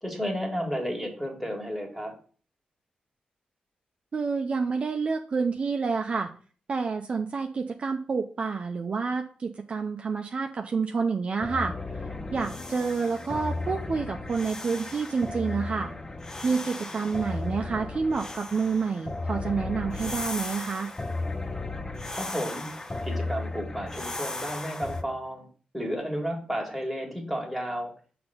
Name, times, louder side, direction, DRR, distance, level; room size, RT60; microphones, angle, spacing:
voice 1, 0.0-2.1 22.1-22.7 23.0-25.5 25.7-27.9, equal, ahead, 1 dB, 1.7 m, -32 dB
voice 2, 4.1-6.3 6.7-11.7 12.3-15.9 16.4-20.9, right 5 dB, 45° right, 4 dB, 0.5 m, -28 dB
sound 1, 11.4-25.0, left 2 dB, 20° left, 0.5 m, -35 dB
6.0 x 3.3 x 5.5 m, 0.41 s
wide cardioid pair, 120°, 3 cm